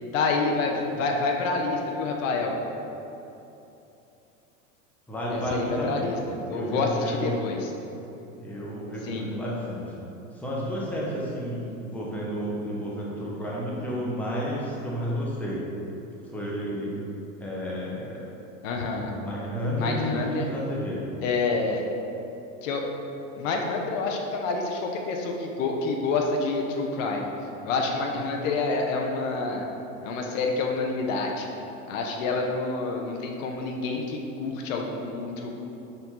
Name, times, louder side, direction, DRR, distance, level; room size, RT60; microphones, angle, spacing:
voice 1, 0.1-2.6 5.3-6.2 6.5-7.7 9.0-9.3 18.6-19.1 19.8-20.5 21.2-21.8 22.6-22.9 23.4-27.3 27.6-29.7 30.0-31.5 31.9-35.5, left 3 dB, 70° left, 1 dB, 0.7 m, -28 dB
voice 2, 5.1-6.2 6.5-7.4 8.4-9.9 10.3-15.6 16.3-17.0 17.4-18.3 19.2-21.0, equal, 5° left, -6 dB, 0.8 m, -31 dB
4.4 x 2.6 x 4.3 m, 2.9 s
hypercardioid pair, 105°, 40 cm